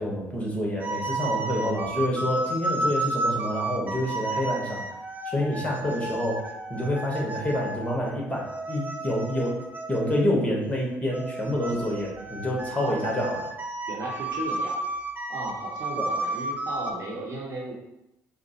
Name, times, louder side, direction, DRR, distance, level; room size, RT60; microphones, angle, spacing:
voice 1, 0.0-4.9 5.2-9.6 9.9-13.5 16.0-16.1, left 1 dB, 15° left, -3 dB, 1.3 m, -28 dB
sound 1, 0.8-10.4 11.1-16.9, right 2 dB, 20° right, 0.6 m, -32 dB
voice 2, 12.8-13.2 13.9-14.8 15.3-17.7, right 2 dB, 40° right, -3 dB, 1.0 m, -35 dB
4.8 x 2.1 x 2.9 m, 0.88 s
figure-of-eight pair, 50°, 8 cm